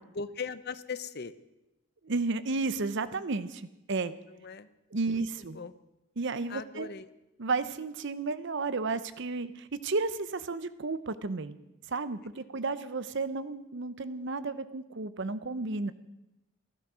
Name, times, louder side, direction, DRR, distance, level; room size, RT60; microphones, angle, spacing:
voice 1, 0.1-1.3 4.3-4.7 5.1-5.2 5.5-5.8 6.5-7.1, left 5 dB, 50° left, 14 dB, 0.6 m, -39 dB
voice 2, 2.0-4.1 4.9-5.6 6.2-6.9 7.4-11.6 11.9-15.9, right 3 dB, 55° right, 13 dB, 0.7 m, -32 dB
15.0 x 11.5 x 6.2 m, 0.96 s
head